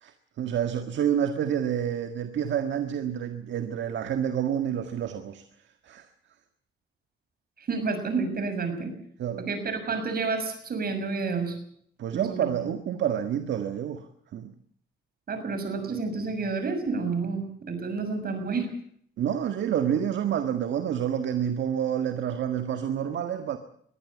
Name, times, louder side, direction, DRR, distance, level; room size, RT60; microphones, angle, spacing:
voice 1, 0.0-5.4 5.8-6.1 9.2-9.5 12.0-14.1 14.3-14.5 19.2-23.6, right 9 dB, 70° right, 1.7 m, -28 dB
voice 2, 7.6-8.9 9.4-11.6 12.1-12.5 15.3-18.7, right 4 dB, 50° right, 6.5 m, -30 dB
22.5 x 14.5 x 8.4 m
cardioid pair, 90°, 20 cm